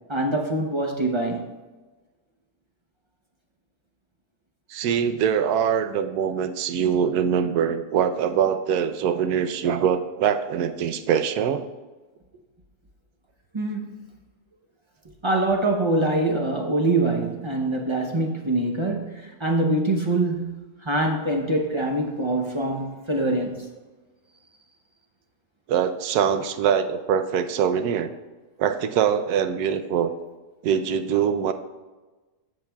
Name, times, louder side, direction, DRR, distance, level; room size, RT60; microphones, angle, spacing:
voice 1, 0.1-1.5 13.5-13.9 15.2-23.7, right 2 dB, 45° right, 1 dB, 0.3 m, -24 dB
voice 2, 4.7-11.7 25.7-28.1 28.6-30.1 30.6-31.5, right 8 dB, 80° right, 9 dB, 1.1 m, -23 dB
14.5 x 5.5 x 2.3 m, 1.2 s
omnidirectional pair, 1.6 m